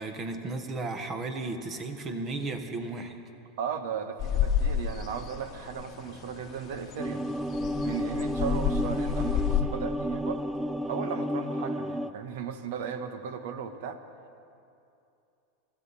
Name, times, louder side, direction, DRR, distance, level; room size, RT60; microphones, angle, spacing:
voice 1, 0.0-3.2, right 3 dB, 35° right, 7 dB, 1.5 m, -34 dB
voice 2, 3.6-7.3 7.8-10.4 10.8-14.0, right 7 dB, 70° right, 9 dB, 1.2 m, -36 dB
sound 1, 4.2-9.6, left 9 dB, 45° left, 1.0 m, -31 dB
sound 2, 7.0-12.1, equal, 10° right, 0.6 m, -31 dB
25.0 x 13.0 x 4.2 m, 2.6 s
hypercardioid pair, 105°, 0 cm